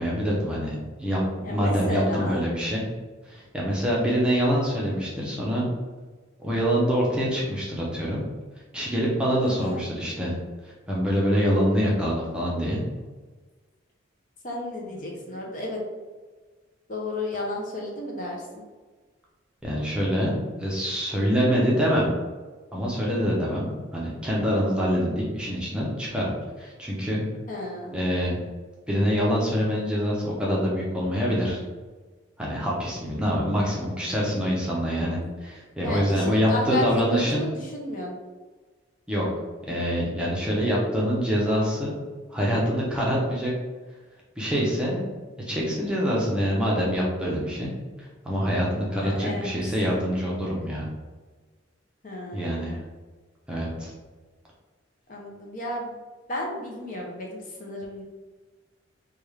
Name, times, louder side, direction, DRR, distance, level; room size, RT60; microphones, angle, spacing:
voice 1, 0.0-2.8 3.2-5.7 6.4-8.2 8.7-10.3 10.6-12.8 14.9-15.0 19.6-22.1 22.7-27.3 27.9-28.4 28.9-31.6 32.4-37.4 39.1-39.3 39.7-41.9 42.3-43.5 44.4-45.1 45.5-47.7 48.0-50.9 52.3-52.8 53.5-53.9, equal, 5° right, -5 dB, 0.6 m, -25 dB
voice 2, 1.4-2.4 9.4-9.8 14.4-15.8 16.9-18.6 27.5-27.9 33.2-33.6 35.8-38.1 49.0-49.5 52.0-52.7 55.1-56.0 56.3-58.0, left 1 dB, 40° left, -1 dB, 0.6 m, -32 dB
3.4 x 2.3 x 3.2 m, 1.3 s
head